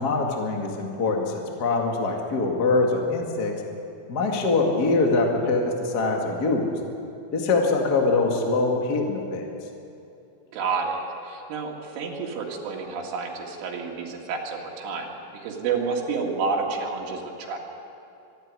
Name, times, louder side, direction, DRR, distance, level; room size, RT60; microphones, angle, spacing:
voice 1, 0.0-3.5 4.1-6.7 7.3-9.5, left 3 dB, 55° left, 1 dB, 1.0 m, -23 dB
voice 2, 10.5-15.2 15.4-17.6, right 4 dB, 90° right, -1 dB, 4.6 m, -29 dB
25.0 x 11.5 x 9.6 m, 2.7 s
omnidirectional pair, 5.4 m